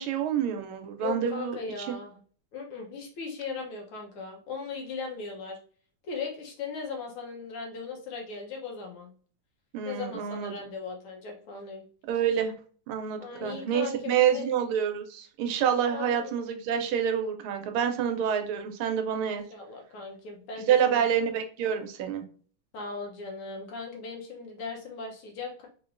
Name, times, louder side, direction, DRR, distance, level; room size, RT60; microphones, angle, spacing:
voice 1, 0.0-2.0 9.7-10.5 12.1-12.5 12.9-19.4 20.7-22.2, right 8 dB, 85° right, 6 dB, 1.5 m, -27 dB
voice 2, 1.0-2.2 2.5-5.6 6.0-9.1 9.8-11.9 13.2-14.5 15.9-16.3 19.3-21.0 22.7-25.7, left 4 dB, 85° left, 1 dB, 1.8 m, -38 dB
4.5 x 2.9 x 2.5 m, 0.44 s
omnidirectional pair, 2.3 m